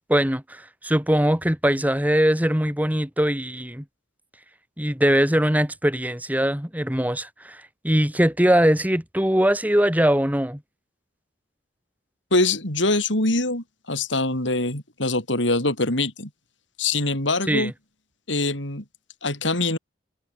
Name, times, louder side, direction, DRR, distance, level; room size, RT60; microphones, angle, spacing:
voice 1, 0.0-3.8 4.8-10.6 17.5-17.7, equal, 10° right, 3.0 m, -21 dB
voice 2, 12.3-16.3 16.8-17.7 18.3-18.8 19.2-19.8, left 2 dB, 75° left, 7.1 m, -23 dB
head